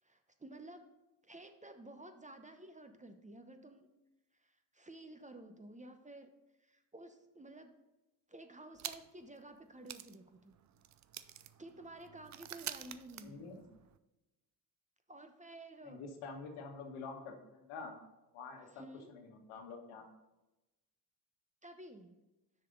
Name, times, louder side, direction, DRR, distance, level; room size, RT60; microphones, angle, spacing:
voice 1, 0.0-0.8 1.2-3.9 4.3-6.3 6.6-7.7 8.3-10.5 11.3-13.5 15.1-16.1 18.7-19.1 21.6-22.2, right 2 dB, 15° right, 7 dB, 0.8 m, -53 dB
sound 1, 8.8-9.3 9.6-9.7 9.9-14.0, right 11 dB, 35° right, 0.4 m, -48 dB
voice 2, 13.2-13.6 15.8-18.0 18.3-18.7 19.1-20.1, left 4 dB, 85° left, 3 dB, 1.4 m, -47 dB
6.5 x 5.2 x 5.2 m, 1.0 s
supercardioid pair, 65°, 50 cm